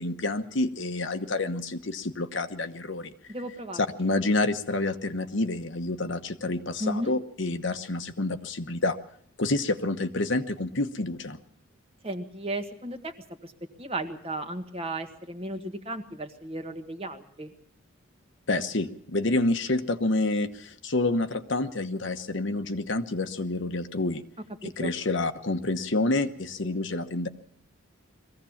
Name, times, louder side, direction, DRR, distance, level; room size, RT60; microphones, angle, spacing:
voice 1, 0.0-3.1 3.7-9.0 9.4-11.4 18.5-24.2 24.6-27.3, left 2 dB, 65° left, 8 dB, 1.2 m, -28 dB
voice 2, 3.3-3.8 6.8-7.1 12.0-13.1 13.4-13.5 13.8-17.5 24.6-24.9, right 1 dB, 30° right, 6 dB, 1.6 m, -34 dB
22.5 x 16.0 x 7.2 m, 0.63 s
head